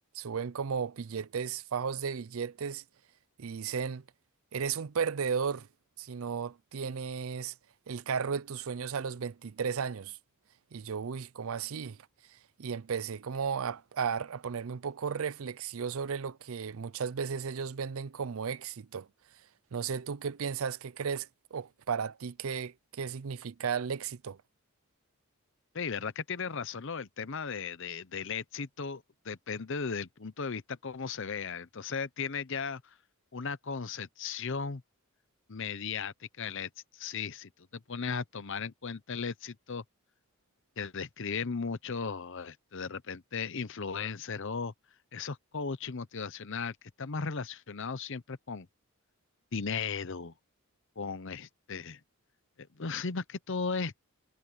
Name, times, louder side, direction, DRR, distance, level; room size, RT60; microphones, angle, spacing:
voice 1, 0.1-2.8 3.4-4.0 4.5-5.7 6.0-7.5 7.9-10.2 10.7-12.0 12.6-19.1 19.7-24.4, right 6 dB, 70° right, 0.5 m, -34 dB
voice 2, 25.7-32.9 33.3-34.8 35.5-39.8 40.8-44.7 45.1-48.7 49.5-50.3 51.0-52.0 52.6-54.1, left 5 dB, 60° left, 0.8 m, -36 dB
head